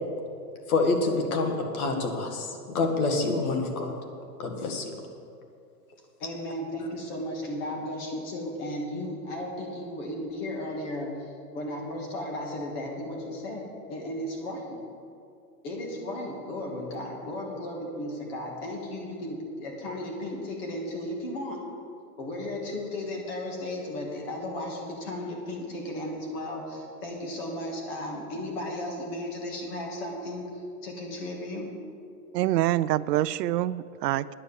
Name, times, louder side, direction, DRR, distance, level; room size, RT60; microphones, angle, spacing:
voice 1, 0.7-3.9 4.4-4.9, left 3 dB, 60° left, 3 dB, 2.1 m, -27 dB
voice 2, 6.2-14.8 15.6-21.6 22.2-31.7, left 1 dB, 35° left, 0 dB, 2.5 m, -35 dB
voice 3, 32.3-34.3, right 14 dB, 80° right, 15 dB, 0.5 m, -26 dB
9.9 x 8.9 x 7.2 m, 2.5 s
supercardioid pair, 165°, 48 cm